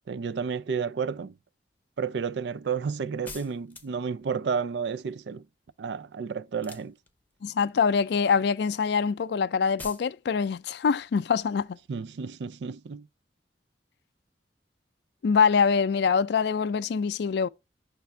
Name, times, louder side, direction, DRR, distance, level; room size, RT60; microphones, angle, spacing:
voice 1, 0.1-1.4 2.0-5.5 5.8-6.9 11.9-13.1, right 6 dB, 75° right, 0.4 m, -31 dB
sound 1, 3.3-4.1 6.5-7.4 9.8-10.1, left 3 dB, 10° left, 0.7 m, -43 dB
voice 2, 7.4-11.8 15.2-17.5, left 6 dB, 70° left, 0.4 m, -24 dB
5.9 x 3.4 x 5.3 m
head